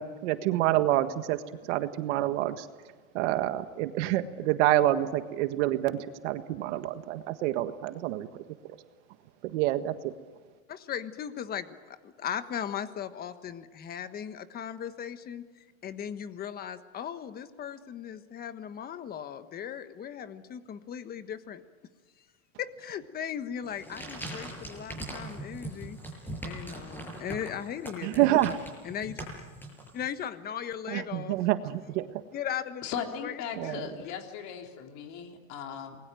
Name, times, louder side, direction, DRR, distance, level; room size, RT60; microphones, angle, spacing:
voice 1, 0.0-1.4 1.7-2.7 3.1-8.3 9.5-10.1 28.0-28.5 30.9-32.1 33.6-33.9, right 14 dB, 55° right, 9 dB, 1.7 m, -27 dB
voice 2, 10.7-15.5 15.8-21.6 22.6-26.0 26.4-28.3 28.8-29.2 29.9-31.4 32.3-32.9 33.1-34.1, left 9 dB, 20° left, 11 dB, 1.3 m, -38 dB
sound 1, 23.6-30.2, right 1 dB, 5° left, 6.8 m, -41 dB
voice 3, 32.8-36.0, left 7 dB, 40° left, 3 dB, 3.7 m, -38 dB
28.5 x 21.0 x 9.1 m, 1.5 s
supercardioid pair, 150°, 41 cm